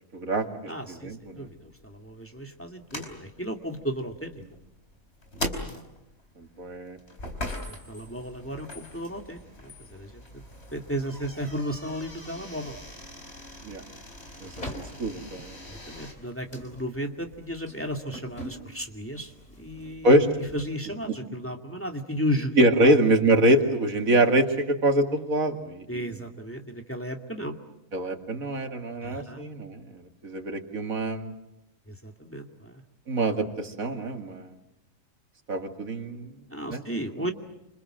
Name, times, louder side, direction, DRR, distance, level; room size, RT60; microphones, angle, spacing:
voice 1, 0.1-1.5 6.4-7.0 13.6-13.8 14.4-15.6 20.0-20.3 22.6-26.0 27.9-31.3 33.1-34.5 35.5-36.3 36.7-36.8 37.2-37.3, right 1 dB, 90° right, 5 dB, 2.7 m, -25 dB
voice 2, 0.7-4.4 7.7-10.4 10.7-12.8 14.7-14.8 15.7-19.3 19.6-20.1 20.5-22.9 25.9-27.5 29.0-29.4 31.9-32.8 36.5-37.3, equal, 10° left, 3 dB, 2.3 m, -34 dB
sound 1, 1.0-16.1, left 1 dB, 50° left, 4.6 m, -41 dB
sound 2, 14.3-20.8, equal, 30° left, 4.9 m, -45 dB
28.5 x 27.0 x 7.7 m, 0.90 s
omnidirectional pair, 1.4 m